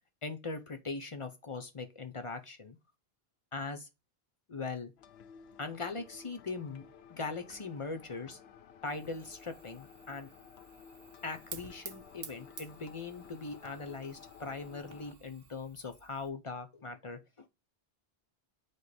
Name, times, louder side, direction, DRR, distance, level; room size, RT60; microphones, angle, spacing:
voice 1, 0.2-2.8 3.5-3.9 4.5-4.9 5.6-6.8 7.1-8.4 8.8-10.3 11.2-17.5, left 4 dB, 35° left, 0.6 m, -40 dB
sound 1, 5.0-15.1, left 7 dB, 80° left, 0.8 m, -55 dB
Fire, 8.9-16.3, right 7 dB, 65° right, 0.9 m, -52 dB
4.9 x 2.1 x 4.1 m
omnidirectional pair, 1.1 m